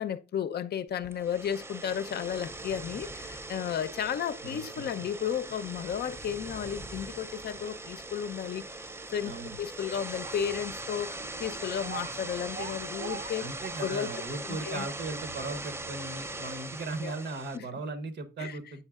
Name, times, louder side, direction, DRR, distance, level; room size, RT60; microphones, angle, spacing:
voice 1, 0.0-8.7 9.1-13.5 13.8-14.1 14.5-14.9 17.0-17.1 17.5-17.7 18.4-18.6, left 8 dB, 55° left, 0.6 m, -33 dB
sound 1, 1.0-17.6, right 2 dB, 15° right, 0.4 m, -40 dB
voice 2, 4.4-4.8 9.2-9.6 13.4-18.8, right 3 dB, 60° right, 1.1 m, -38 dB
sound 2, 8.9-9.0 9.4-9.5 10.2-10.4 10.6-10.7 10.9-14.3, right 7 dB, 45° right, 0.7 m, -44 dB
8.4 x 5.4 x 2.4 m
cardioid pair, 90°, 20 cm